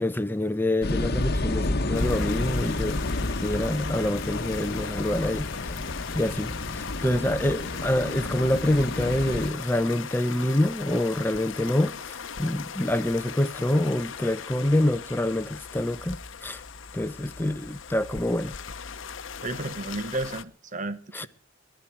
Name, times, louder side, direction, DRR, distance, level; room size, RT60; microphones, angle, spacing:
voice 1, 0.0-3.0 3.4-5.9 6.1-16.2 16.4-16.6 16.9-18.5 21.1-21.3, left 1 dB, 10° left, 0.7 m, -26 dB
sound 1, 0.8-9.5, left 2 dB, 55° left, 1.1 m, -30 dB
sound 2, 1.9-20.4, left 6 dB, 75° left, 0.9 m, -39 dB
voice 2, 19.4-21.3, right 2 dB, 40° right, 1.3 m, -32 dB
19.5 x 11.5 x 4.6 m
head